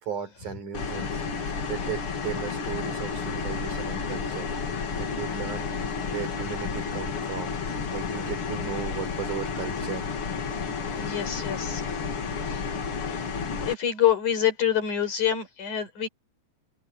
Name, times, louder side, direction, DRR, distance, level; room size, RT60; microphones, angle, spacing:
voice 1, 0.0-5.7 6.1-10.1, right 8 dB, 85° right, 5.3 m, -36 dB
sound 1, 0.7-13.7, left 5 dB, 50° left, 2.9 m, -31 dB
voice 2, 10.9-11.8 12.4-12.6 13.0-13.2 13.6-16.1, left 10 dB, 80° left, 6.5 m, -26 dB
omnidirectional pair, 3.4 m